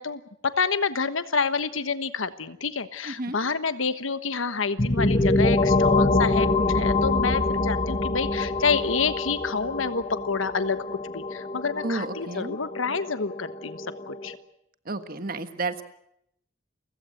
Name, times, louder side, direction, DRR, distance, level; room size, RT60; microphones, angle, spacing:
voice 1, 0.0-14.3, left 5 dB, 90° left, 12 dB, 1.3 m, -28 dB
voice 2, 3.0-3.4 11.8-12.6 14.8-15.8, right 3 dB, 50° right, 9 dB, 1.5 m, -31 dB
sound 1, 4.8-14.3, left 2 dB, 30° left, 1.5 m, -25 dB
29.5 x 16.5 x 7.8 m, 0.74 s
head